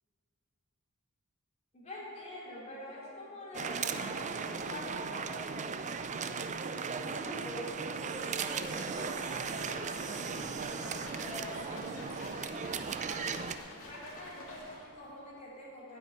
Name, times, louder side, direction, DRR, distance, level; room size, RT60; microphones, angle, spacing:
voice 1, 1.7-5.4 13.9-16.0, left 1 dB, 30° left, -6 dB, 3.2 m, -45 dB
sound 1, 3.5-13.6, right 5 dB, 35° right, 0.4 m, -37 dB
voice 2, 7.1-7.7 8.1-9.9 10.8-12.3, equal, 10° right, -7 dB, 1.8 m, -45 dB
sound 2, 8.1-15.0, left 1 dB, 65° left, 2.7 m, -48 dB
9.6 x 8.1 x 8.6 m, 2.9 s
head